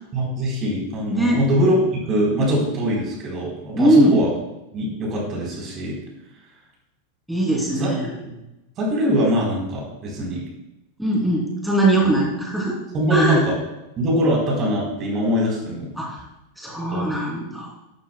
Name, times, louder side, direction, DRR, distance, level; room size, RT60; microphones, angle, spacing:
voice 1, 0.1-4.3 4.7-6.0 7.8-8.0 8.2-8.4 8.8-10.4 12.0-12.1 12.9-13.5 14.0-15.9 16.9-17.1, equal, 30° right, -2 dB, 3.9 m, -22 dB
voice 2, 1.1-1.4 3.8-4.2 7.3-8.1 11.0-12.8 13.1-13.5 16.0-16.2 16.6-17.7, right 1 dB, 5° right, -3 dB, 3.0 m, -20 dB
12.5 x 12.0 x 2.3 m, 0.94 s
figure-of-eight pair, 90°, 0 cm